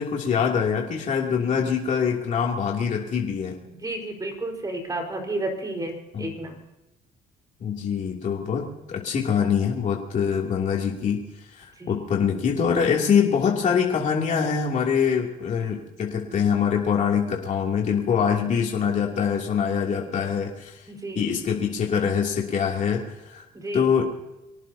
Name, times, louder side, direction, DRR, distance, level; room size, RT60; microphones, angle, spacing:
voice 1, 0.0-3.6 6.1-6.3 7.6-11.2 11.5-20.8 21.2-23.4 23.7-24.0, left 7 dB, 45° left, -2 dB, 2.9 m, -24 dB
voice 2, 1.4-1.8 3.7-6.6 11.8-12.0 20.9-21.2 23.5-23.9, right 2 dB, 20° right, 2 dB, 4.7 m, -32 dB
25.0 x 18.0 x 2.8 m, 0.98 s
cardioid pair, 110°, 17 cm